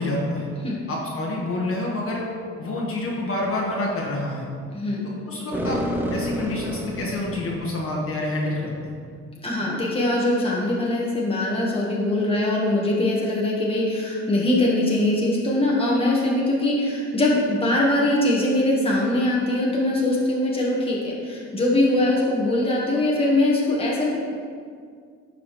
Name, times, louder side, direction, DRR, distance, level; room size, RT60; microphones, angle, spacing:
voice 1, 0.0-0.5 0.9-2.3 2.6-4.5 5.0-5.8 6.1-8.9, left 2 dB, 45° left, -3 dB, 1.5 m, -28 dB
voice 2, 4.7-5.0 9.4-24.2, left 1 dB, 20° left, -4 dB, 1.4 m, -22 dB
sound 1, 5.5-7.9, equal, 5° right, 0.8 m, -28 dB
11.5 x 4.0 x 3.1 m, 2.1 s
cardioid pair, 90°, 30 cm